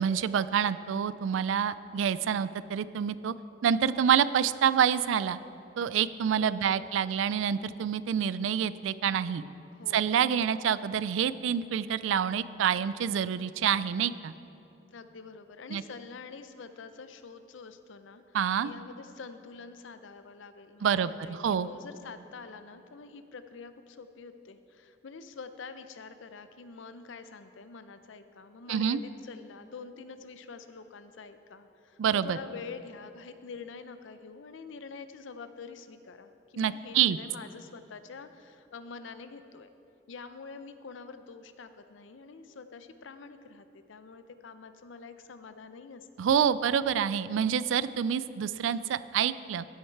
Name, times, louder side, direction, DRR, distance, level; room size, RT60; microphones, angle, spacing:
voice 1, 0.0-3.3 3.6-5.4 5.8-9.4 9.9-14.3 15.7-15.8 18.3-18.7 20.8-21.1 21.4-21.7 28.7-29.0 32.0-32.4 36.6-37.2 46.2-49.6, right 8 dB, 85° right, 16 dB, 0.3 m, -27 dB
voice 2, 6.3-6.8 9.7-10.2 14.9-18.4 18.6-39.7 40.1-46.1, left 5 dB, 80° left, 10 dB, 0.5 m, -46 dB
14.5 x 6.4 x 4.6 m, 2.8 s
head